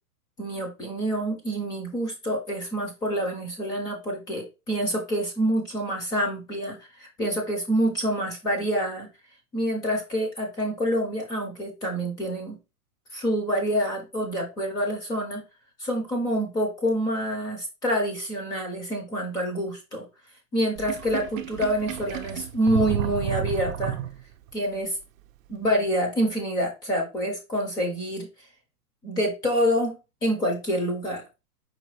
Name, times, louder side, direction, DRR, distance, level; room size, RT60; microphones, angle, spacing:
voice 1, 0.4-9.1 9.5-12.6 13.1-15.4 15.8-20.1 20.5-24.0 24.5-24.9 25.5-28.3 29.0-30.0 30.2-31.2, equal, 10° left, 1 dB, 0.5 m, -27 dB
Sink (filling or washing), 20.8-24.5, right 10 dB, 60° right, 0.6 m, -32 dB
4.8 x 2.2 x 4.6 m, 0.27 s
hypercardioid pair, 155°, 46 cm